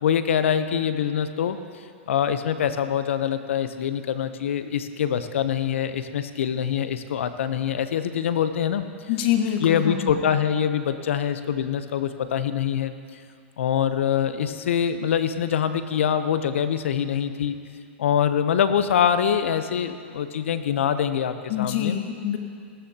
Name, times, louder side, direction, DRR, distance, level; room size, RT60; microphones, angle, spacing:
voice 1, 0.0-1.6 2.1-8.9 9.6-12.9 13.6-17.6 18.0-22.0, left 8 dB, 80° left, 11 dB, 0.8 m, -24 dB
voice 2, 9.1-10.2 21.5-22.4, left 10 dB, 55° left, 4 dB, 1.5 m, -25 dB
17.5 x 12.5 x 2.9 m, 2.3 s
hypercardioid pair, 120°, 7 cm